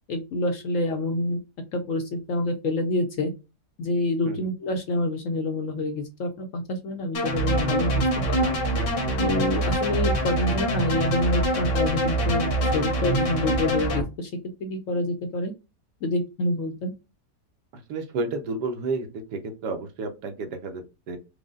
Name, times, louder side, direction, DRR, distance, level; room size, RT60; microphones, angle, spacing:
voice 1, 0.1-1.4 1.7-3.3 3.8-8.5 9.2-14.3 14.6-15.5 16.0-16.9, left 2 dB, 65° left, 5 dB, 0.8 m, -27 dB
sound 1, 7.1-14.0, right 1 dB, 85° left, 1.8 m, -24 dB
voice 2, 17.7-21.2, right 3 dB, 80° right, 6 dB, 1.4 m, -31 dB
5.0 x 2.0 x 3.6 m, 0.27 s
omnidirectional pair, 1.8 m